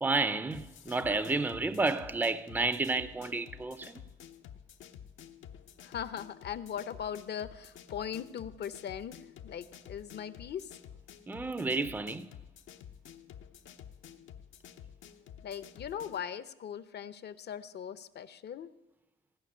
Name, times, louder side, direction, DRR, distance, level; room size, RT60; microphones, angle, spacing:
voice 1, 0.0-4.0 11.3-12.3, right 3 dB, 10° right, 0.6 m, -31 dB
sound 1, 0.5-16.2, left 9 dB, 80° left, 0.9 m, -51 dB
voice 2, 5.8-10.7 15.4-18.7, left 8 dB, 55° left, 0.8 m, -40 dB
16.0 x 5.8 x 9.9 m
cardioid pair, 90°, 20 cm